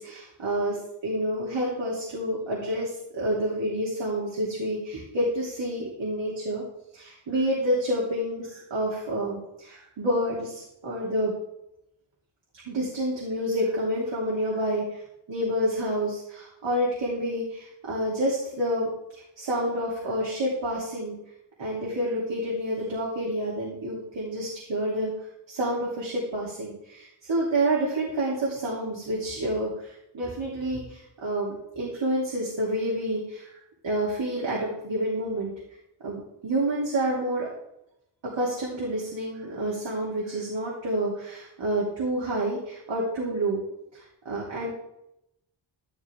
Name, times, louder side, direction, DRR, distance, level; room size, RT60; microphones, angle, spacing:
voice 1, 0.0-6.6 6.9-11.3 12.7-15.0 15.3-18.9 19.4-21.2 21.6-25.1 25.5-33.6 33.8-35.5 36.0-37.5 38.3-43.6 43.9-44.7, right 1 dB, 75° right, -5 dB, 3.2 m, -28 dB
12.5 x 12.5 x 3.6 m, 0.83 s
cardioid pair, 85°, 46 cm